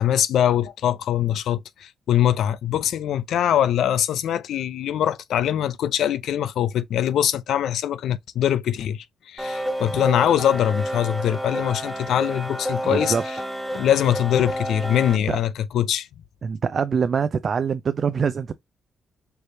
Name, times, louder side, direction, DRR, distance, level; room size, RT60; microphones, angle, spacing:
voice 1, 0.0-13.2 13.7-16.1, left 10 dB, 80° left, 0.4 m, -22 dB
sound 1, 9.4-15.2, equal, ahead, 1.3 m, -30 dB
voice 2, 12.8-13.2 13.7-13.8 15.1-15.4 16.4-18.5, right 6 dB, 55° right, 0.4 m, -24 dB
4.6 x 3.2 x 2.7 m
cardioid pair, 70°, 0 cm